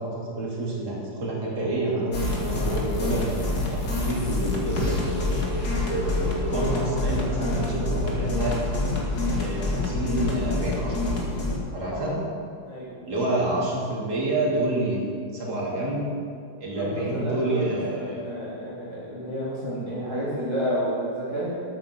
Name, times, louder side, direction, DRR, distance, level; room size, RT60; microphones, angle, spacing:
voice 1, 0.0-8.6 9.4-11.2 11.7-12.2 13.1-15.0 15.3-16.0 16.6-18.2, right 2 dB, 55° right, -4 dB, 3.4 m, -28 dB
sound 1, 2.1-11.6, left 2 dB, 50° left, 2.6 m, -27 dB
voice 2, 12.6-13.1 16.6-21.5, equal, 15° right, -11 dB, 3.6 m, -31 dB
12.5 x 9.0 x 6.9 m, 2.3 s
omnidirectional pair, 2.2 m